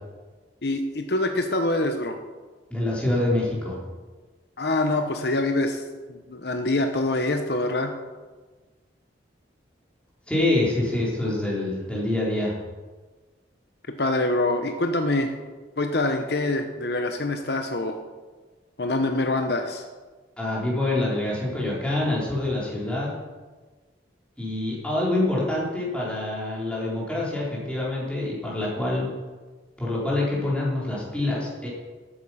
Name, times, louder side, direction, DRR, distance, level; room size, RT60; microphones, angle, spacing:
voice 1, 0.6-2.2 4.6-5.8 6.1-7.9 13.9-15.3 15.8-18.0 18.8-19.9, left 2 dB, 60° left, 6 dB, 0.9 m, -25 dB
voice 2, 2.7-3.8 10.3-12.5 20.4-23.1 24.4-29.1 29.8-31.7, left 1 dB, 5° left, -6 dB, 3.8 m, -26 dB
13.0 x 9.0 x 5.7 m, 1.3 s
head